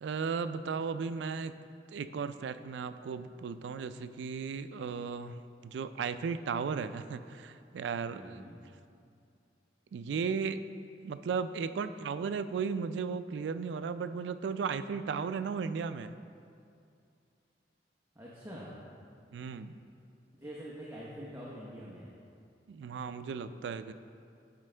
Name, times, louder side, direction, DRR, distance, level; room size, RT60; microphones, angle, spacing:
voice 1, 0.0-1.5 1.9-8.4 9.9-10.6 11.0-16.1 19.3-19.8 22.7-23.9, right 5 dB, 80° right, 11 dB, 0.3 m, -35 dB
voice 2, 8.1-8.6 18.1-18.8 20.4-22.1, equal, 15° right, -6 dB, 0.8 m, -45 dB
11.0 x 5.2 x 3.3 m, 2.5 s
head